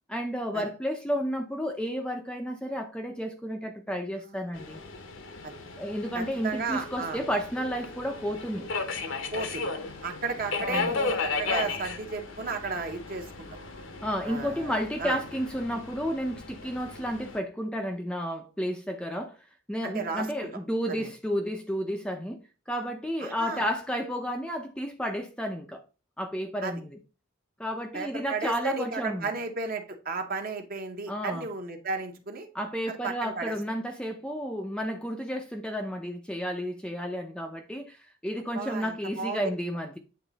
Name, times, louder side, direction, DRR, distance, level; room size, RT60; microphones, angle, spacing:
voice 1, 0.1-4.8 5.8-8.7 10.7-10.9 14.0-19.4 19.7-22.4 22.7-25.8 26.2-27.0 27.6-29.3 31.1-31.5 32.5-40.0, equal, 5° left, 0.5 m, -32 dB
voice 2, 4.2-4.5 5.4-5.6 6.1-7.2 9.3-9.7 10.0-13.5 14.2-14.7 15.0-15.2 19.8-20.5 20.9-21.1 23.2-23.6 26.6-26.8 27.9-32.5 32.9-33.5 38.5-39.5, right 4 dB, 45° right, 1.0 m, -34 dB
Subway metro underground, 4.5-17.4, left 4 dB, 65° left, 0.9 m, -35 dB
8.7 x 3.2 x 4.0 m
head